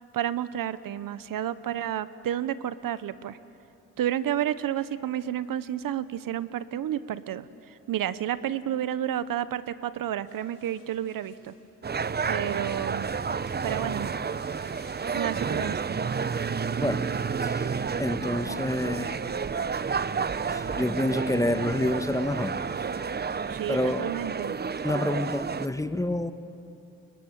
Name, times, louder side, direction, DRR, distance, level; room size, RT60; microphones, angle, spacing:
voice 1, 0.1-3.4 4.0-11.5 12.3-13.1 13.6-14.1 15.1-15.8 23.5-24.6, right 11 dB, 75° right, 15 dB, 0.9 m, -31 dB
sound 1, 10.2-23.5, left 4 dB, 90° left, 7.7 m, -59 dB
sound 2, 11.8-25.7, right 6 dB, 30° right, 0.7 m, -30 dB
voice 2, 17.4-19.2 20.5-22.6 23.7-24.1 24.8-26.3, left 1 dB, 10° left, 10 dB, 1.3 m, -28 dB
30.0 x 22.5 x 7.4 m, 2.7 s
cardioid pair, 65°, 34 cm